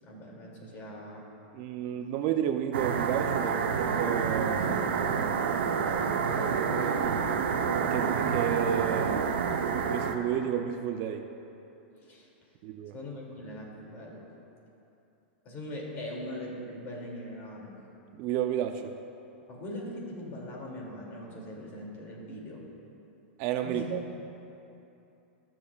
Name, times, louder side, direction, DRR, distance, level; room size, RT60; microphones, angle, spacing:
voice 1, 0.0-1.3 6.3-7.1 12.0-12.3 12.9-14.3 15.4-17.7 19.5-22.6 23.6-24.0, left 1 dB, 35° left, -2 dB, 2.6 m, -41 dB
voice 2, 1.5-5.3 7.8-9.2 9.9-11.3 12.6-12.9 18.2-18.9 23.4-24.0, right 9 dB, 45° right, 6 dB, 0.5 m, -31 dB
sound 1, 2.7-10.2, right 6 dB, 75° right, 0.8 m, -28 dB
21.5 x 7.5 x 2.4 m, 2.8 s
hypercardioid pair, 130°, 6 cm